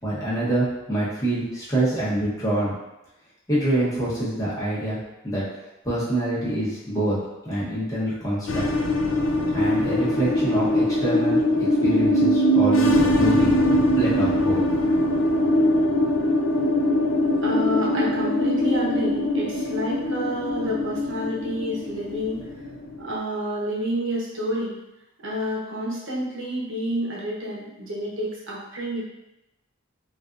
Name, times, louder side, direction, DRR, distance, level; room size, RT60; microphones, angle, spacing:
voice 1, 0.0-2.7 3.5-5.0 5.2-5.4 5.8-7.2 7.4-8.6 9.5-13.5 13.9-14.6, right 1 dB, 15° left, -9 dB, 1.0 m, -26 dB
sound 1, 8.5-23.2, left 1 dB, 70° left, 0.4 m, -22 dB
voice 2, 17.4-22.4 23.0-24.8 25.2-29.0, equal, 65° right, -5 dB, 0.8 m, -29 dB
3.4 x 2.5 x 2.5 m, 0.95 s
head